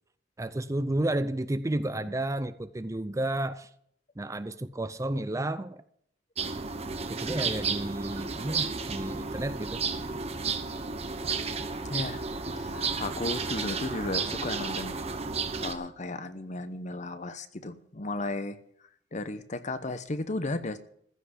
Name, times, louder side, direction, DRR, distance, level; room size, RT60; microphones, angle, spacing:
voice 1, 0.4-3.7 4.2-5.8 7.0-9.8, right 1 dB, 20° right, 0.5 m, -31 dB
sound 1, 6.4-15.7, right 4 dB, 35° right, 1.0 m, -32 dB
voice 2, 11.9-12.3 12.6-15.0 15.6-18.6 19.1-20.8, left 2 dB, 40° left, 0.9 m, -34 dB
15.0 x 5.9 x 9.9 m
head